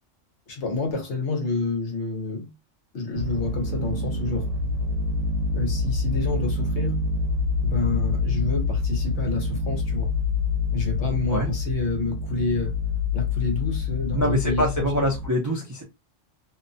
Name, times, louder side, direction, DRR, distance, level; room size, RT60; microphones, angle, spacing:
voice 1, 0.5-2.5 2.9-4.5 5.5-7.0 7.6-10.1 10.7-12.8 13.1-15.1, left 3 dB, 65° left, 1.2 m, -29 dB
sound 1, 3.1-15.3, left 3 dB, 85° right, 1.0 m, -26 dB
voice 2, 14.1-15.8, equal, 30° right, 0.3 m, -24 dB
2.8 x 2.1 x 2.5 m
omnidirectional pair, 1.3 m